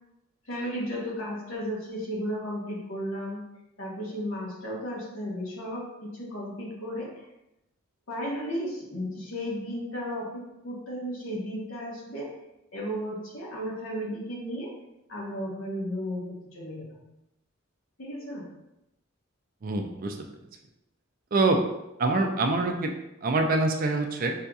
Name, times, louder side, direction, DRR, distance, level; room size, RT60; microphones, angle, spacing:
voice 1, 0.4-3.4 3.8-7.1 8.1-12.3 12.7-14.7 15.1-17.0 18.0-18.5, equal, 75° left, -4 dB, 1.2 m, -34 dB
voice 2, 19.6-20.2 21.3-21.6 22.0-22.9 23.2-24.3, right 2 dB, 45° right, 4 dB, 0.4 m, -25 dB
5.5 x 2.6 x 2.3 m, 0.89 s
head